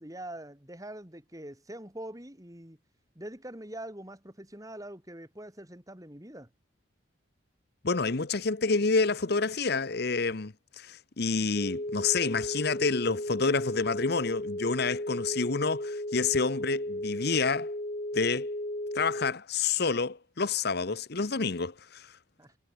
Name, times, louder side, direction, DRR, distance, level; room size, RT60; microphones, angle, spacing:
voice 1, 0.0-2.8 3.2-6.5 22.4-22.5, right 1 dB, 15° right, 3.9 m, -43 dB
voice 2, 7.8-17.7 18.1-18.5 18.9-22.2, left 4 dB, 55° left, 0.9 m, -28 dB
sound 1, 11.5-19.3, left 1 dB, 35° left, 2.8 m, -35 dB
head